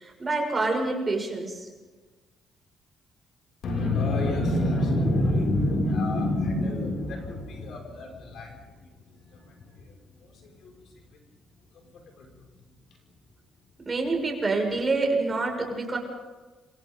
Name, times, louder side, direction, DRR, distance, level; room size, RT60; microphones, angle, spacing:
voice 1, 0.0-1.7 13.8-16.0, right 3 dB, 30° right, 1 dB, 6.2 m, -27 dB
voice 2, 3.6-11.2 11.7-13.1, left 1 dB, 70° left, 0 dB, 6.3 m, -29 dB
28.5 x 25.5 x 4.0 m, 1.3 s
cardioid pair, 90°, 0 cm